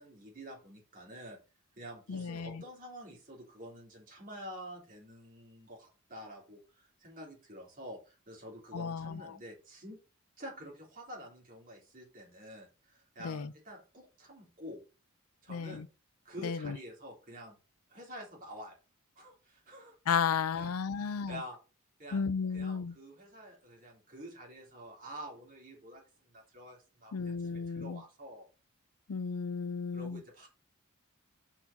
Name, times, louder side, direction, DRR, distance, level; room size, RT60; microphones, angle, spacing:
voice 1, 0.0-1.4 1.8-10.0 10.4-14.8 15.4-15.8 16.3-17.6 17.9-18.8 19.2-20.0 20.5-21.6 22.0-22.2 22.5-28.4 29.9-30.5, equal, 40° right, 3.3 m, -48 dB
voice 2, 2.1-2.6 8.7-9.4 13.2-13.5 15.5-15.9 16.4-16.8 20.1-21.4 22.1-22.9 27.1-28.0 29.1-30.2, left 6 dB, 80° left, 0.5 m, -34 dB
5.5 x 4.6 x 5.8 m
head